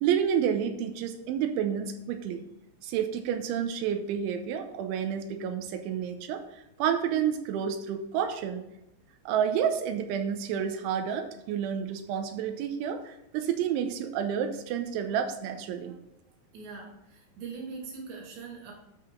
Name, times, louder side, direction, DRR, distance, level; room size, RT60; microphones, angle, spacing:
voice 1, 0.0-2.4 2.8-6.4 6.8-8.6 9.3-16.0, right 8 dB, 90° right, 6 dB, 3.3 m, -30 dB
voice 2, 16.5-18.7, right 4 dB, 70° right, 0 dB, 4.4 m, -41 dB
13.0 x 5.8 x 3.7 m, 0.91 s
omnidirectional pair, 5.3 m